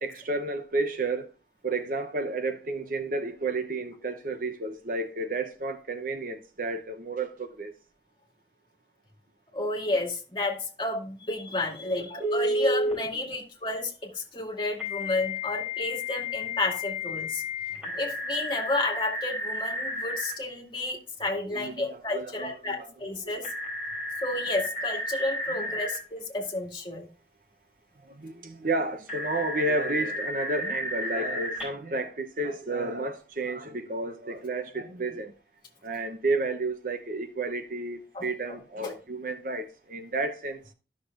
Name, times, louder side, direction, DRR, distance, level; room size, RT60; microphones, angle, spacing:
voice 1, 0.0-1.3 1.6-7.8 12.3-12.4 21.4-22.9 23.2-23.4 25.6-25.7 28.0-35.3 35.8-40.6, right 2 dB, 50° right, 0.8 m, -31 dB
voice 2, 9.5-17.4 17.8-23.5 24.2-27.1 38.1-38.3 38.8-38.9, left 2 dB, 25° left, 2.1 m, -31 dB
Telephone, 12.2-12.9 14.8-20.3 23.4-26.0 29.1-31.6, left 1 dB, 5° right, 4.2 m, -32 dB
13.0 x 6.4 x 2.5 m
head